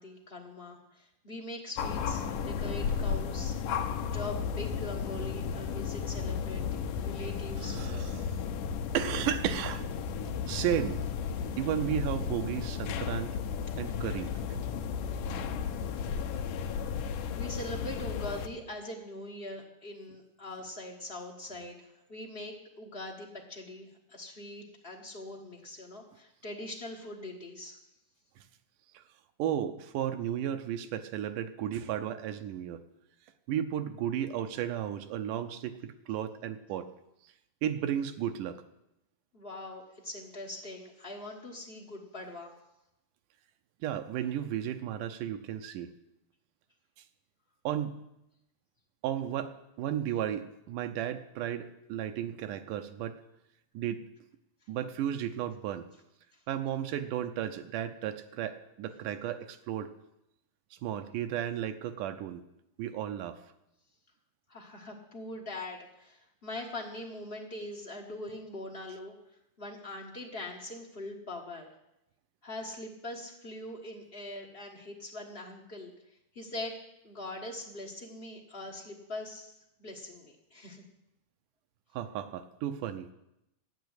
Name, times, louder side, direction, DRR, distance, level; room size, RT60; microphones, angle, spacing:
voice 1, 0.0-3.5 4.0-6.6 7.0-7.8 17.4-27.8 39.3-42.5 64.5-69.1 69.6-71.7 72.4-75.9 76.3-76.8 77.0-79.5 79.8-80.8, left 1 dB, 65° left, -1 dB, 0.5 m, -42 dB
sound 1, 1.8-18.5, left 6 dB, 85° left, 2.4 m, -34 dB
voice 2, 7.6-8.3 8.9-9.9 10.5-11.0 11.6-13.4 13.8-14.3 28.9-29.0 29.4-32.8 33.5-36.9 37.6-38.6 43.8-45.9 47.6-48.0 49.0-53.2 53.7-54.0 54.7-55.9 56.5-59.9 60.8-62.4 62.8-63.4 81.9-83.1, right 10 dB, 85° right, 8 dB, 2.4 m, -34 dB
12.5 x 9.4 x 8.0 m, 0.86 s
omnidirectional pair, 3.6 m